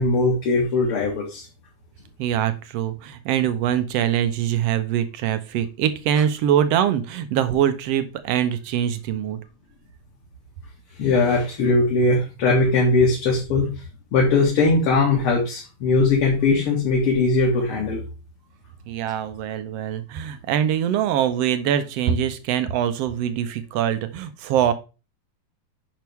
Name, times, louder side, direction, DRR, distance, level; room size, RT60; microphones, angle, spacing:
voice 1, 0.0-1.5 11.0-13.7 14.1-18.0, left 3 dB, 50° left, -2 dB, 2.5 m, -20 dB
voice 2, 2.2-9.4 18.9-24.7, right 10 dB, 75° right, 11 dB, 1.6 m, -23 dB
9.2 x 5.7 x 3.4 m, 0.31 s
omnidirectional pair, 3.3 m